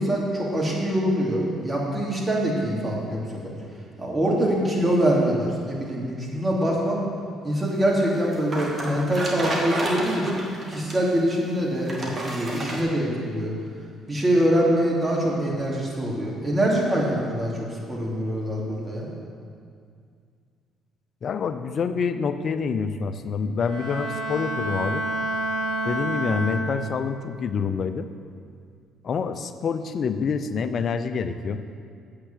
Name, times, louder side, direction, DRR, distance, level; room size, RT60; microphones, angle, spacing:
voice 1, 0.0-3.4 4.0-7.0 7.4-13.5 14.1-17.5 17.9-19.1, right 1 dB, 25° right, -4 dB, 2.9 m, -24 dB
sound 1, 8.1-11.1 11.9-12.8, right 1 dB, 40° right, 2.2 m, -30 dB
voice 2, 21.2-25.1 25.8-28.1 29.0-31.6, left 5 dB, 55° left, 10 dB, 0.6 m, -27 dB
Bowed string instrument, 23.6-27.1, right 1 dB, 75° right, 2.5 m, -29 dB
8.1 x 6.8 x 7.5 m, 2.2 s
supercardioid pair, 65°, 0 cm